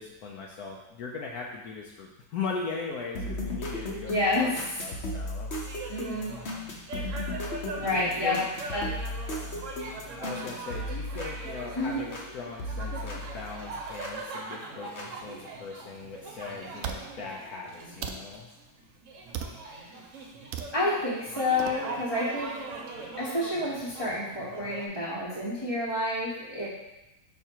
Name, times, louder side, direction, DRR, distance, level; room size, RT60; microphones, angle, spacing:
voice 1, 0.0-5.8 7.8-8.4 10.2-18.5, left 4 dB, 70° left, -2 dB, 1.1 m, -39 dB
sound 1, 3.1-12.3 12.6-14.2 15.0-15.1, left 1 dB, 45° left, 1.0 m, -36 dB
voice 2, 4.1-4.6 5.9-6.4 7.8-8.4 8.7-8.9 11.7-12.0 20.7-22.7 23.2-26.7, left 2 dB, 20° left, -8 dB, 1.0 m, -29 dB
sound 2, 5.7-24.9, right 3 dB, 55° right, 1.1 m, -41 dB
sound 3, 16.0-16.1 16.8-17.0 18.0-18.2 19.3-19.6 20.5-20.7 21.6-21.8, right 7 dB, 75° right, 0.6 m, -35 dB
5.7 x 4.2 x 4.5 m, 0.95 s
omnidirectional pair, 1.7 m